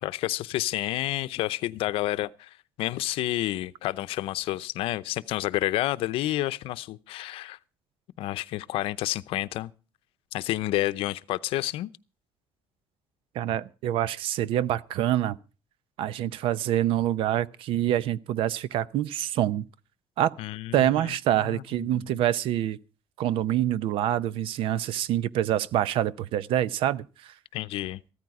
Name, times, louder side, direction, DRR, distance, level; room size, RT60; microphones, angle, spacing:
voice 1, 0.0-7.6 8.2-9.7 10.3-11.9 20.4-21.1 21.4-22.1 27.5-28.0, left 16 dB, 85° left, 0.7 m, -30 dB
voice 2, 13.3-15.4 16.0-19.7 20.2-20.3 20.7-22.8 23.2-27.3, right 12 dB, 75° right, 0.7 m, -26 dB
15.0 x 13.5 x 4.8 m
cardioid pair, 170°, 9 cm